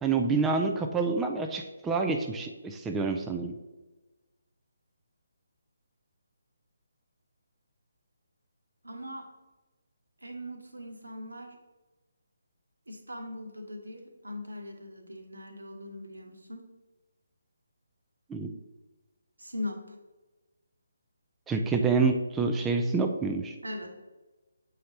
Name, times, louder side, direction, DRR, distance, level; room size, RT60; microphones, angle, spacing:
voice 1, 0.0-3.5 18.3-18.5 21.5-23.6, right 4 dB, 10° right, 3 dB, 0.4 m, -27 dB
voice 2, 8.8-9.3 10.2-11.6 12.9-16.7 19.4-19.8 23.6-23.9, left 1 dB, 75° right, 3 dB, 1.2 m, -40 dB
7.6 x 5.1 x 2.8 m, 1.1 s
figure-of-eight pair, 145°, 0 cm